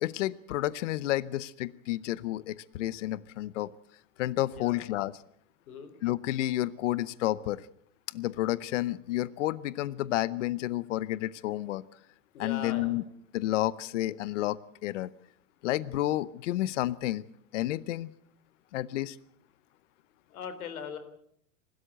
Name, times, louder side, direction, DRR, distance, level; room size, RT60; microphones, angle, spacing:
voice 1, 0.0-3.7 4.2-5.2 6.0-7.7 8.1-11.8 12.4-13.0 13.3-15.1 15.6-17.2 17.5-18.1 18.7-19.2, left 15 dB, 60° left, 19 dB, 0.8 m, -30 dB
voice 2, 4.4-4.9 5.7-5.9 12.3-13.0 20.3-21.0, left 7 dB, 85° left, 11 dB, 3.8 m, -40 dB
26.5 x 13.0 x 7.9 m, 0.68 s
supercardioid pair, 175°, 42 cm